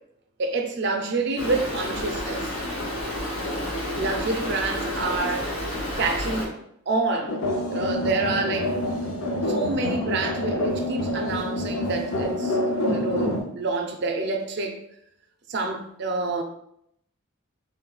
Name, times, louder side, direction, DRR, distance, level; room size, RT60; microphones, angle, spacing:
voice 1, 0.4-2.5 4.0-5.5 6.0-6.6 6.9-7.4 7.7-8.7 9.0-9.1 9.5-14.8 15.5-16.4, right 3 dB, 50° right, 0.4 m, -27 dB
Stream, 1.4-6.5, left 1 dB, 60° left, 0.9 m, -30 dB
sound 1, 7.3-13.4, left 1 dB, 85° left, 0.5 m, -27 dB
3.8 x 2.2 x 2.3 m
head